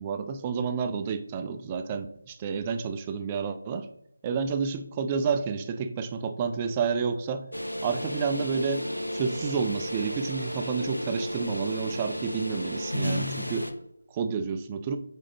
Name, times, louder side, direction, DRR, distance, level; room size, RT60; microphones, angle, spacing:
voice 1, 0.0-3.9 4.2-7.5 7.8-8.8 9.1-13.7 14.1-15.0, right 6 dB, 20° right, 8 dB, 0.3 m, -30 dB
sound 1, 7.5-13.7, left 1 dB, 85° left, 0.7 m, -33 dB
8.4 x 4.1 x 3.4 m, 0.78 s
figure-of-eight pair, 160°, 0 cm